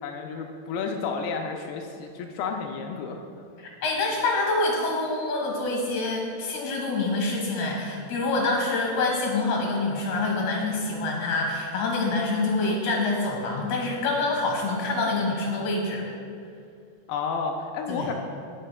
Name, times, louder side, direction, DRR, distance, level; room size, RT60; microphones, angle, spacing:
voice 1, 0.0-3.2 17.1-18.1, left 5 dB, 80° left, 3 dB, 2.3 m, -31 dB
voice 2, 3.8-16.0 17.9-18.1, left 3 dB, 55° left, 0 dB, 2.5 m, -26 dB
15.0 x 6.5 x 2.3 m, 2.4 s
omnidirectional pair, 4.7 m